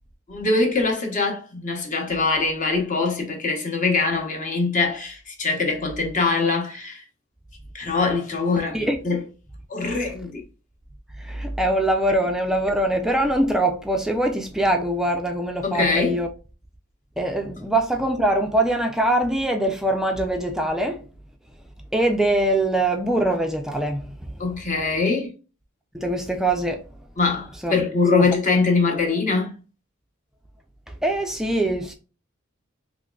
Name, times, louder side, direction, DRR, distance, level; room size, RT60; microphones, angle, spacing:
voice 1, 0.3-7.0 7.7-9.2 9.7-10.4 15.6-16.2 24.4-25.3 27.2-29.5, left 3 dB, 40° left, 0.9 m, -23 dB
voice 2, 11.3-16.3 17.2-21.0 21.9-24.0 25.9-26.8 27.6-27.8 28.1-28.2 31.0-31.9, right 1 dB, 5° right, 0.3 m, -23 dB
3.6 x 3.0 x 2.2 m
head